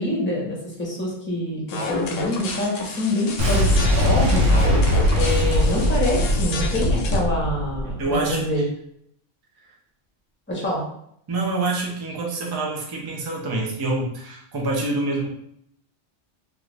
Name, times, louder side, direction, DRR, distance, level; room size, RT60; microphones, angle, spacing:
voice 1, 0.0-4.6 5.1-8.6 10.5-10.9, left 1 dB, 10° left, -4 dB, 0.7 m, -26 dB
sound 1, 1.7-7.2, left 4 dB, 90° left, 0.9 m, -29 dB
Boom, 3.4-8.3, equal, 75° right, 1.0 m, -21 dB
voice 2, 8.0-8.6 11.3-15.3, right 2 dB, 40° right, -1 dB, 0.3 m, -26 dB
2.5 x 2.4 x 3.2 m, 0.69 s
omnidirectional pair, 1.3 m